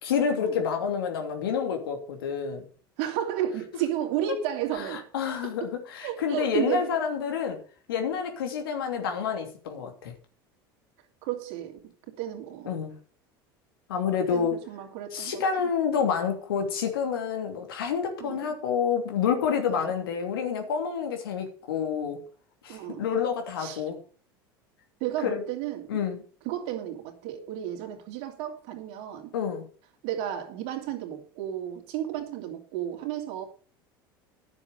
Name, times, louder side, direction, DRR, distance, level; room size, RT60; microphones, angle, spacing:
voice 1, 0.0-2.7 4.7-7.6 7.9-10.1 12.7-12.9 13.9-14.6 15.1-22.2 22.6-24.0 25.2-25.4 25.9-26.2 29.3-29.6, left 7 dB, 80° left, 2.9 m, -28 dB
voice 2, 3.0-5.0 5.4-5.7 6.0-6.9 11.2-11.8 12.2-12.7 14.3-15.4 18.2-18.5 19.7-19.9 22.7-23.0 23.6-23.8 25.0-26.0 26.4-29.3 30.0-33.4, right 11 dB, 60° right, 2.8 m, -33 dB
10.5 x 7.2 x 6.7 m
hypercardioid pair, 80°, 12 cm